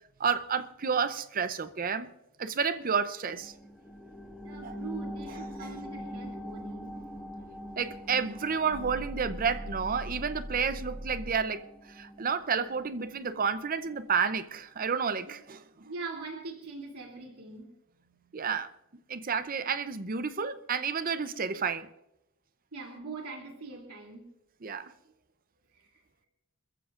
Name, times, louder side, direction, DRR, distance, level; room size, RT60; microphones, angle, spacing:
voice 1, 0.2-2.1 2.4-3.5 4.6-4.8 5.3-5.8 7.8-15.9 18.3-18.7 19.1-21.9 24.6-24.9, right 6 dB, 40° right, 0.6 m, -31 dB
sound 1, 3.3-14.4 14.8-14.9, equal, ahead, 2.3 m, -44 dB
voice 2, 4.4-6.9 15.8-17.7 22.7-24.2 25.7-26.0, right 4 dB, 85° right, 2.9 m, -42 dB
sound 2, 8.7-11.5, equal, 25° right, 2.3 m, -40 dB
26.5 x 14.5 x 2.5 m
head